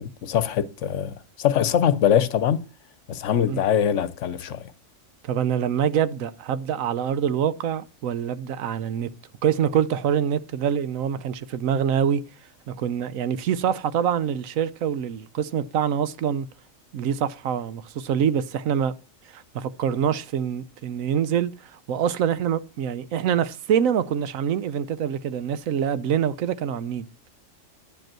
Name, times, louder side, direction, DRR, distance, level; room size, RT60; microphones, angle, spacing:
voice 1, 0.0-2.7 3.1-4.7, left 9 dB, 70° left, 1.0 m, -23 dB
voice 2, 5.2-9.1 9.4-12.2 12.7-16.5 16.9-18.9 19.3-27.1, right 8 dB, 85° right, 1.1 m, -25 dB
11.0 x 5.2 x 7.4 m
omnidirectional pair, 1.4 m